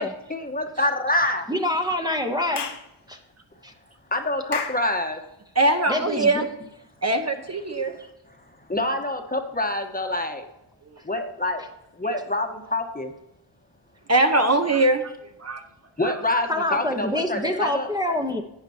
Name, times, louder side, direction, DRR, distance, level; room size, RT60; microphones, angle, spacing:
voice 1, 0.3-1.5 4.1-5.2 7.7-7.8 8.7-10.4 11.0-11.6 12.0-13.1 16.0-17.9, left 1 dB, 20° left, 4 dB, 1.2 m, -26 dB
voice 2, 1.5-2.7 3.1-3.2 3.6-3.7 5.9-6.4 16.5-18.4, left 1 dB, 10° right, 2 dB, 1.0 m, -26 dB
Clapping / Chirp tweet, 2.6-2.9 4.5-4.9, left 5 dB, 55° left, 1.3 m, -30 dB
voice 3, 5.5-6.5 7.0-7.9 14.1-15.1 15.4-15.6 16.0-16.1, right 2 dB, 30° right, 5 dB, 1.0 m, -21 dB
12.0 x 8.9 x 2.9 m, 0.87 s
wide cardioid pair, 85°, 49 cm